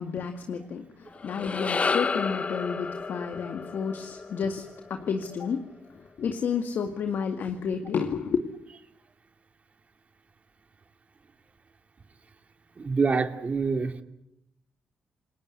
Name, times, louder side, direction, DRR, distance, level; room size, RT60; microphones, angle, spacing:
voice 1, 0.0-4.6 4.9-5.6 6.2-8.4, left 6 dB, 65° left, 5 dB, 2.2 m, -30 dB
sound 1, 1.1-5.5, left 4 dB, 35° left, 0.9 m, -31 dB
voice 2, 12.8-13.9, right 4 dB, 40° right, 7 dB, 2.6 m, -26 dB
29.0 x 19.5 x 8.2 m, 0.80 s
supercardioid pair, 65°, 4 cm